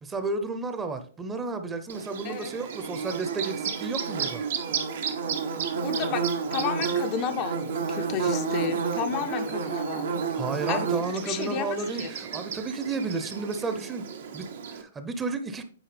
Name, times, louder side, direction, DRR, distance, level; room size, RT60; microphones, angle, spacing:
voice 1, 0.0-4.4 10.4-14.1 14.3-15.6, right 3 dB, 15° right, 0.8 m, -32 dB
Bird / Buzz, 1.9-14.8, right 6 dB, 60° right, 0.9 m, -31 dB
voice 2, 5.8-10.2 10.7-11.7 12.0-12.1, left 8 dB, 35° left, 0.6 m, -32 dB
8.9 x 4.6 x 3.3 m
figure-of-eight pair, 115°, 0 cm